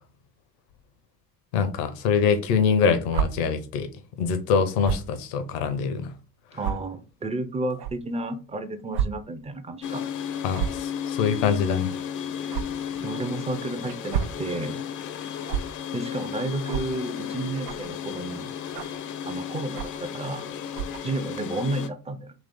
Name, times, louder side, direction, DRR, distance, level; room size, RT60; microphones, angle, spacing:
voice 1, 1.5-3.9 4.2-6.1 10.4-11.9, left 6 dB, 65° left, 0.8 m, -24 dB
sound 1, 3.1-3.3 4.8-5.1 5.8-5.9 6.6-6.7 7.8-7.9 8.9-9.1 9.4-9.5 10.5-10.8 12.5-12.6 13.9-14.4 15.5-15.6 16.7-16.9 17.6-17.9 18.7-19.0 19.7-20.0 20.7-21.0, right 9 dB, 75° right, 0.6 m, -28 dB
voice 2, 6.5-10.0 13.0-14.8 15.9-18.6 19.2-20.5 21.0-22.3, right 2 dB, 15° right, 0.5 m, -31 dB
sound 2, 9.8-21.9, left 8 dB, 40° left, 0.6 m, -34 dB
3.1 x 3.0 x 3.9 m
figure-of-eight pair, 55°, 49 cm